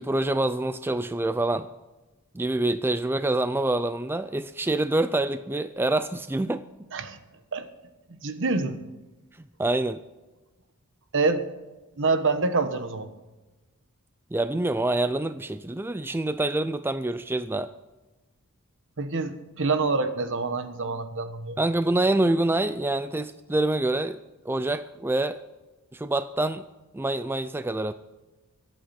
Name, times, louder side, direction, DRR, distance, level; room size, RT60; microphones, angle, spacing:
voice 1, 0.0-1.7 2.3-6.6 9.6-10.0 14.3-17.7 21.6-24.2 24.5-25.4 25.9-26.6 26.9-27.9, right 2 dB, 10° right, 11 dB, 0.4 m, -26 dB
voice 2, 8.2-8.8 11.1-11.4 12.0-13.1 19.0-21.6, right 3 dB, 60° right, 9 dB, 1.2 m, -26 dB
23.5 x 8.7 x 4.3 m, 1.1 s
head